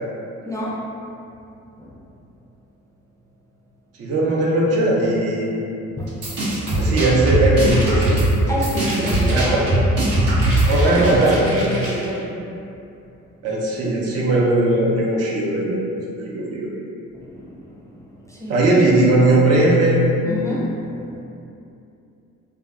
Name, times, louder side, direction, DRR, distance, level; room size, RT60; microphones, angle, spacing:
voice 1, 0.4-0.8 1.8-1.9 6.0-6.1 8.5-9.9 10.8-12.3 17.1-17.8 18.3-18.6 20.3-21.1, equal, 10° left, -7 dB, 0.3 m, -28 dB
voice 2, 4.0-5.5 6.7-8.2 9.0-9.8 10.7-11.9 13.4-15.8 16.3-16.7 18.5-20.1, right 1 dB, 55° right, -4 dB, 0.5 m, -18 dB
sound 1, 6.1-10.9, right 1 dB, 90° right, 0.8 m, -20 dB
sound 2, 6.8-7.0 7.5-8.3 8.7-12.2, right 1 dB, 25° right, 0.8 m, -32 dB
2.5 x 2.3 x 2.3 m, 2.7 s
cardioid pair, 90°, 30 cm